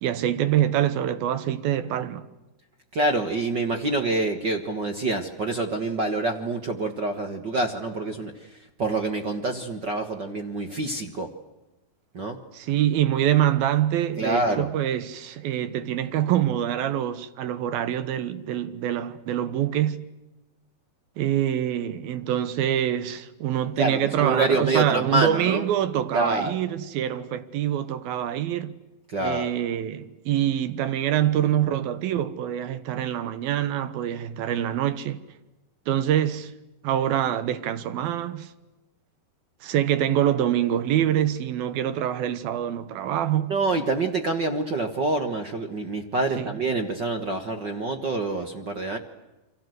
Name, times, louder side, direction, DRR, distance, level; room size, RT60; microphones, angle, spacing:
voice 1, 0.0-2.3 12.5-20.1 21.2-28.8 29.2-35.2 35.9-36.5 36.8-38.5 39.6-43.6 46.4-46.5, right 11 dB, 80° right, 3.1 m, -25 dB
voice 2, 2.9-8.3 8.8-11.3 12.1-12.4 14.2-14.7 23.8-25.6 26.1-26.5 29.1-29.5 43.5-49.0, right 2 dB, 50° right, 1.3 m, -26 dB
29.5 x 24.5 x 8.0 m
omnidirectional pair, 4.3 m